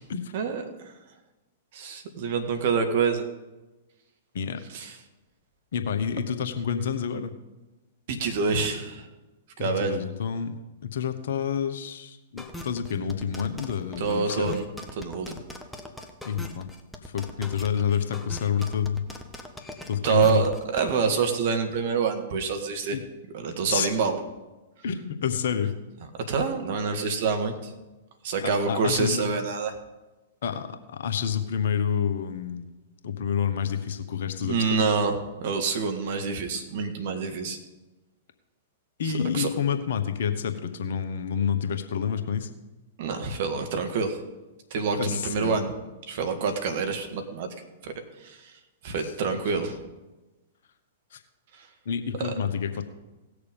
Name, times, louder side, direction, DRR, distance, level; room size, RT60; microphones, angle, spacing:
voice 1, 0.3-0.9 1.7-3.2 4.7-5.0 8.1-9.1 9.6-10.0 14.0-14.6 15.0-15.4 20.0-23.0 23.3-24.2 26.3-27.7 28.2-29.7 34.4-37.6 39.0-39.5 43.0-44.2 44.7-45.7 46.1-47.5 47.8-47.9 48.2-48.5 48.8-49.8 51.6-51.7 52.2-52.3, right 5 dB, 55° right, 6 dB, 1.9 m, -27 dB
voice 2, 5.7-7.3 9.6-14.6 16.2-16.7 17.1-19.0 19.9-20.4 22.9-23.0 23.7-23.9 24.8-25.7 28.4-29.2 30.4-32.7 33.0-34.8 39.0-42.5 44.9-45.6 49.0-49.1 51.1-51.2 51.8-52.8, left 7 dB, 65° left, 8 dB, 1.2 m, -28 dB
sound 1, 12.4-20.9, left 1 dB, 5° left, 1.3 m, -40 dB
17.5 x 6.7 x 5.3 m, 1.1 s
hypercardioid pair, 110°, 0 cm